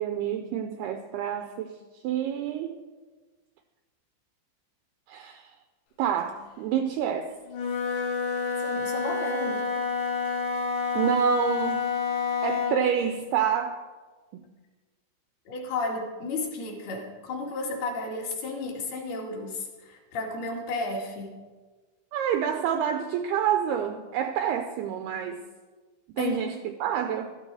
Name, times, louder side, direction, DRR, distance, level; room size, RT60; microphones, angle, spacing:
voice 1, 0.0-1.8 2.0-2.8 5.1-5.5 6.0-7.3 11.0-11.9 12.4-13.8 14.3-14.4 22.1-25.4 26.1-27.3, right 9 dB, 90° right, 7 dB, 2.3 m, -28 dB
Wind instrument woodwind instrument, 7.5-12.9, left 5 dB, 80° left, 4.3 m, -28 dB
voice 2, 8.6-9.7 15.5-21.3 26.2-26.6, left 2 dB, 60° left, -1 dB, 3.8 m, -33 dB
16.0 x 14.0 x 4.8 m, 1.3 s
omnidirectional pair, 5.5 m